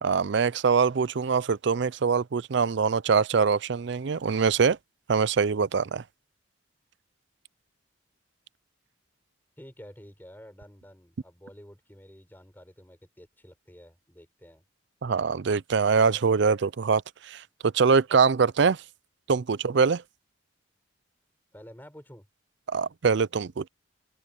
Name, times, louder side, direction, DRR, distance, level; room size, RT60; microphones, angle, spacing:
voice 1, 0.0-4.8 5.1-6.0 15.0-18.8 19.3-20.0 22.7-23.7, right 5 dB, 55° right, 0.4 m, -23 dB
voice 2, 9.6-14.6 21.5-22.3, equal, 10° left, 6.0 m, -50 dB
head